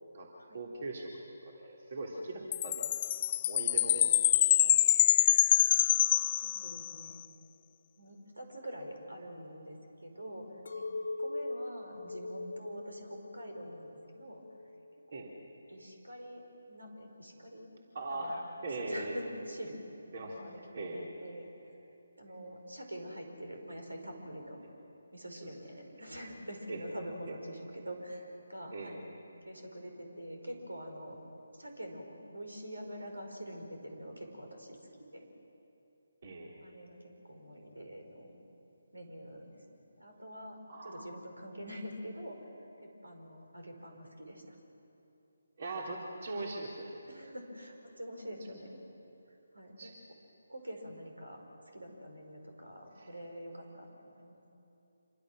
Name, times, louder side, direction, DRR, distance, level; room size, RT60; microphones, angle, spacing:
voice 1, 0.5-1.1 1.4-2.9 3.3-4.2 4.6-5.1 15.1-15.3 17.9-19.1 20.1-20.4 20.7-21.0 22.3-22.4 26.7-26.8 28.7-28.9 36.2-36.6 40.7-41.0 45.6-47.0 49.8-49.9 53.0-53.1, right 2 dB, 45° right, -1 dB, 3.5 m, -40 dB
Chime, 2.5-7.0, left 12 dB, 30° left, 0.4 m, -26 dB
voice 2, 6.4-7.2 8.0-10.5 10.7-10.8 11.2-14.4 15.1-15.3 15.7-16.4 16.7-17.7 18.1-19.8 20.2-21.9 22.2-24.6 25.1-29.0 29.5-31.2 31.5-34.8 35.1-35.3 36.6-38.3 38.9-42.5 42.8-44.6 47.1-48.8 49.3-49.9 50.5-51.4 51.7-54.4, equal, 80° right, 3 dB, 5.2 m, -45 dB
Chink clink, 10.7-15.0 15.4-16.0, left 2 dB, 60° left, 1.8 m, -41 dB
27.0 x 24.0 x 6.4 m, 2.9 s
figure-of-eight pair, 150°, 0 cm